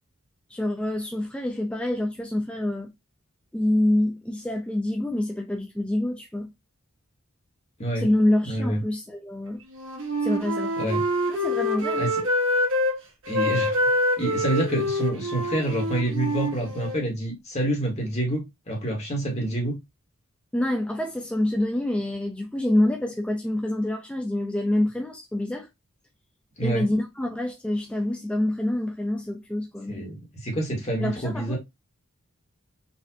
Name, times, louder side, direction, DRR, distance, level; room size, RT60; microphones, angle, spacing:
voice 1, 0.5-2.9 3.5-6.5 8.0-9.6 10.2-10.9 11.3-12.1 20.5-25.7 26.6-30.1 31.0-31.6, left 1 dB, 5° left, 0.4 m, -26 dB
voice 2, 8.5-8.8 10.8-11.0 12.0-12.1 13.3-13.8 14.2-19.7 26.6-26.8 29.9-31.6, right 1 dB, 30° left, 1.5 m, -27 dB
Wind instrument woodwind instrument, 9.7-13.0 13.3-17.0, left 1 dB, 65° right, 1.4 m, -26 dB
4.1 x 2.5 x 2.8 m
head